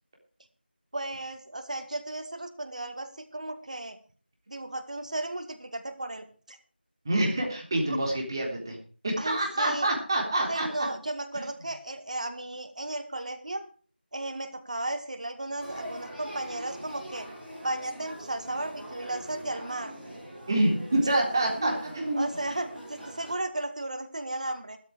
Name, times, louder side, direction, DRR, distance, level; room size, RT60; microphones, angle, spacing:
voice 1, 0.9-4.0 4.5-6.6 9.2-9.9 10.5-13.6 14.1-17.3 17.6-20.0 21.5-21.8 22.2-24.8, right 1 dB, 45° right, 9 dB, 2.0 m, -35 dB
voice 2, 7.1-8.8 9.0-10.7 20.5-22.3, right 1 dB, 25° right, 0 dB, 3.5 m, -26 dB
Male speech man speaking / Child speech kid speaking / Conversation, 15.6-23.3, equal, 5° right, 4.2 m, -43 dB
13.0 x 13.0 x 5.0 m, 0.41 s
figure-of-eight pair, 170°, 6 cm